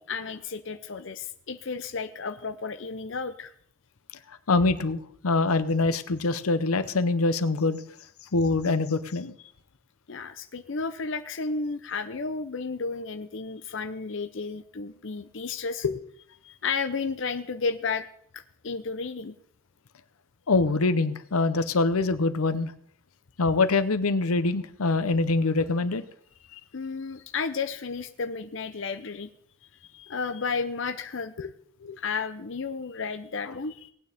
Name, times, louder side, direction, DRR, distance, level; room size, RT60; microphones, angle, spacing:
voice 1, 0.0-3.5 10.1-15.8 16.4-18.0 18.3-19.3 26.7-29.3 29.8-31.5 32.0-33.9, left 4 dB, 60° left, 8 dB, 0.6 m, -33 dB
voice 2, 4.3-7.8 8.3-9.4 15.8-16.0 20.5-22.7 23.4-26.0 26.5-26.6 31.4-31.5 31.8-32.0 33.5-33.6, left 3 dB, 90° left, 13 dB, 0.8 m, -24 dB
18.0 x 9.2 x 3.5 m, 0.62 s
head